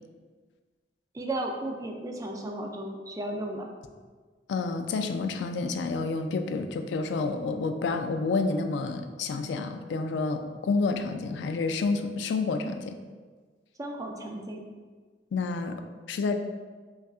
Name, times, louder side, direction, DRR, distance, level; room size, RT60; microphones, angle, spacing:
voice 1, 1.1-3.6 13.8-14.7, right 1 dB, 20° right, 2 dB, 0.3 m, -34 dB
voice 2, 4.5-13.0 15.3-15.8 16.1-16.4, left 3 dB, 75° left, 7 dB, 0.3 m, -29 dB
5.3 x 2.4 x 2.4 m, 1.5 s
head